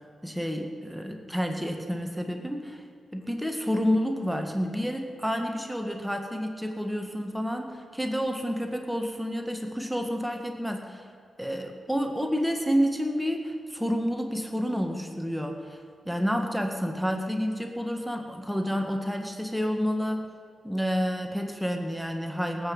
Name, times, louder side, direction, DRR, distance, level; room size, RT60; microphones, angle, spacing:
voice 1, 0.2-2.8 3.1-11.0 11.4-15.8 16.0-20.3 20.6-22.7, equal, 5° right, 3 dB, 1.7 m, -29 dB
19.5 x 8.4 x 5.5 m, 2.3 s
cardioid pair, 55°, 0 cm